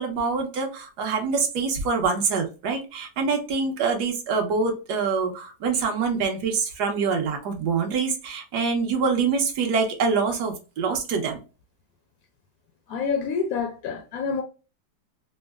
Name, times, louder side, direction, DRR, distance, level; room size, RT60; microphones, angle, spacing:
voice 1, 0.0-11.4, right 5 dB, 65° right, 1.3 m, -25 dB
voice 2, 12.9-14.4, left 5 dB, 75° left, 0.8 m, -27 dB
3.6 x 2.1 x 2.2 m
omnidirectional pair, 2.0 m